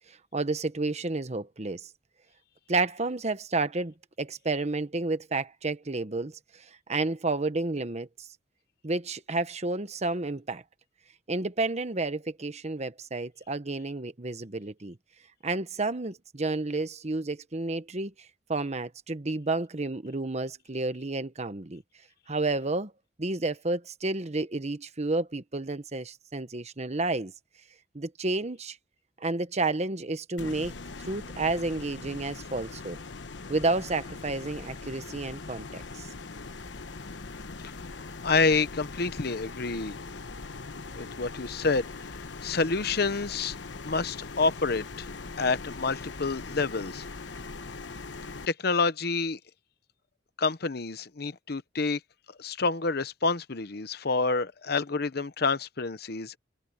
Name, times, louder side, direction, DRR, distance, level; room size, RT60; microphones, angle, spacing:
voice 1, 0.3-1.9 2.7-6.4 6.9-8.1 8.8-10.6 11.3-15.0 15.4-18.1 18.5-21.8 22.3-22.9 23.2-27.3 27.9-28.8 29.2-30.7 31.1-33.0 33.5-36.1, right 3 dB, 40° right, 1.1 m, -30 dB
sound 1, 30.4-48.5, left 3 dB, 90° left, 1.1 m, -41 dB
voice 2, 37.9-40.0 40.9-43.6 43.8-45.1 45.4-47.1 48.5-49.4 50.4-52.0 52.4-56.4, left 4 dB, 60° left, 0.9 m, -28 dB
head